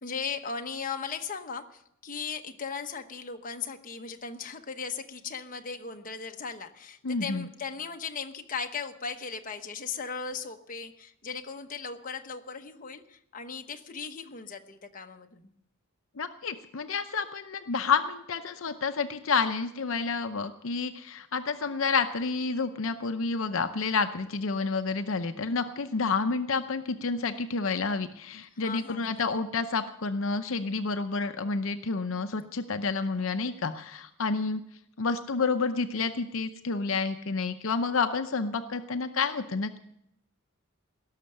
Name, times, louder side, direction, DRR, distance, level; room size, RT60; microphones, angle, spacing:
voice 1, 0.0-15.5 28.6-29.2, left 5 dB, 40° left, 5 dB, 1.0 m, -37 dB
voice 2, 7.0-7.5 16.2-34.6 35.0-39.8, left 4 dB, 70° left, 8 dB, 0.7 m, -29 dB
17.5 x 6.7 x 9.9 m, 0.77 s
head